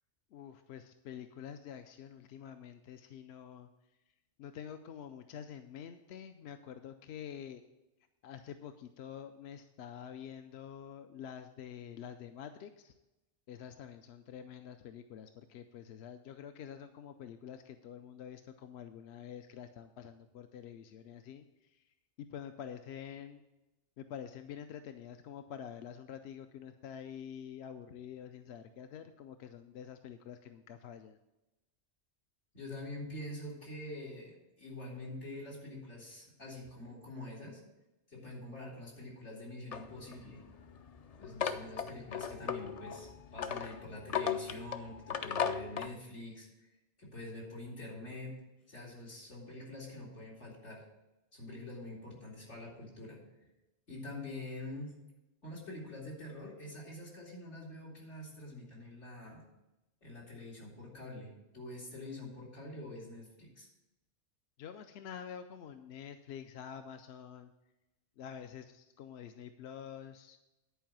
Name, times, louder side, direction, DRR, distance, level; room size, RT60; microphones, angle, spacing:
voice 1, 0.3-3.7 4.4-7.6 8.2-12.9 13.5-21.8 22.2-23.4 24.0-31.2 64.6-67.5 68.2-70.4, left 8 dB, 75° left, 8 dB, 0.8 m, -47 dB
voice 2, 32.5-37.6 38.1-40.4 41.2-46.7 47.0-48.4 48.7-50.8 51.3-53.5 53.9-54.9 55.4-59.4 60.0-63.7, left 1 dB, 90° left, -4 dB, 3.1 m, -46 dB
sound 1, 39.7-45.9, left 7 dB, 55° left, 0.4 m, -37 dB
10.5 x 4.7 x 7.4 m, 0.98 s
omnidirectional pair, 1.2 m